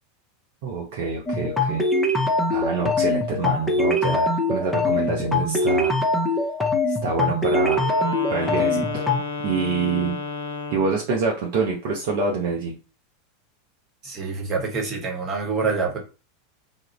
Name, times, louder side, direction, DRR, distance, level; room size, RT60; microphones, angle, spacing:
voice 1, 0.6-5.9 6.9-7.8 8.3-9.0 9.4-10.2 10.7-12.7, right 4 dB, 55° right, 0.5 m, -26 dB
sound 1, 1.3-9.2, left 2 dB, 5° left, 0.6 m, -23 dB
Wind instrument woodwind instrument, 7.4-11.0, left 3 dB, 80° left, 0.4 m, -32 dB
voice 2, 14.0-16.0, right 4 dB, 35° right, 1.0 m, -26 dB
2.4 x 2.0 x 3.0 m
figure-of-eight pair, 85°, 0 cm